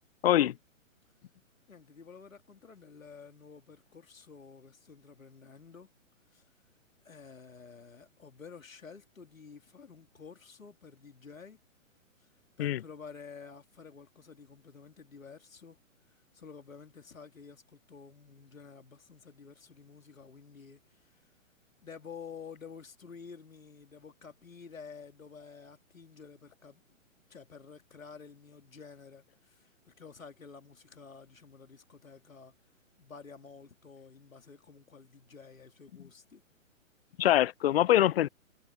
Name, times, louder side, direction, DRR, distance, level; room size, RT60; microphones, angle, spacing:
voice 1, 0.2-0.5 12.6-12.8 37.2-38.3, left 13 dB, 50° left, 0.6 m, -24 dB
voice 2, 1.7-5.9 6.3-6.4 7.0-11.6 12.6-15.8 16.3-21.2 21.8-27.0 27.3-32.5 33.0-36.4, left 5 dB, 80° left, 3.2 m, -51 dB
hypercardioid pair, 130°, 40 cm